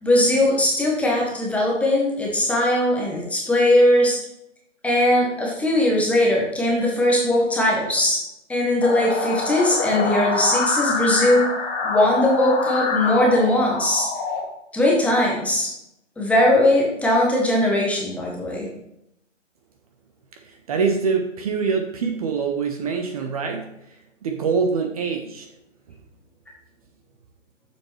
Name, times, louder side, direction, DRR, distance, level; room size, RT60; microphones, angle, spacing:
voice 1, 0.0-4.2 4.8-8.2 8.5-11.5 11.8-14.1 14.7-15.7 16.2-18.7, left 1 dB, 5° left, -3 dB, 0.9 m, -19 dB
sound 1, 8.8-14.4, left 4 dB, 20° left, 1.5 m, -26 dB
voice 2, 20.4-23.7 24.2-25.5, right 5 dB, 30° right, 5 dB, 0.7 m, -24 dB
8.6 x 7.1 x 3.2 m, 0.82 s
hypercardioid pair, 140°, 38 cm